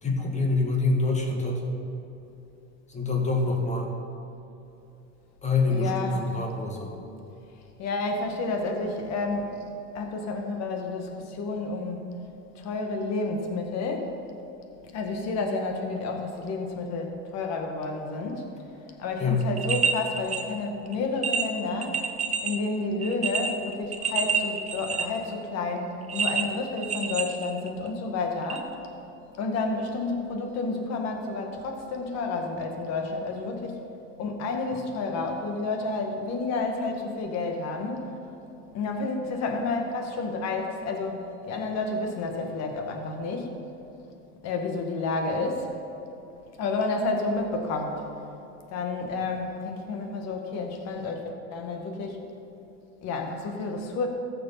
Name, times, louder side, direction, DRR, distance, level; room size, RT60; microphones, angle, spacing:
voice 1, 0.0-1.6 2.9-3.9 5.4-6.9 19.2-19.4, left 3 dB, 20° left, 0 dB, 1.8 m, -26 dB
voice 2, 5.7-6.2 7.8-9.6 9.9-12.1 12.6-14.1 14.9-18.5 19.0-22.1 22.4-28.8 29.4-33.8 34.2-38.2 38.7-43.6 44.4-45.7 46.6-48.1 48.7-52.3 53.0-54.1, left 3 dB, 45° left, 3 dB, 1.8 m, -30 dB
sound 1, 19.4-20.4 20.9-21.0 21.2-22.6 23.0-25.2 26.1-27.9 28.5-28.6, right 6 dB, 20° right, 0.7 m, -28 dB
14.5 x 6.8 x 5.8 m, 2.8 s
supercardioid pair, 120°, 36 cm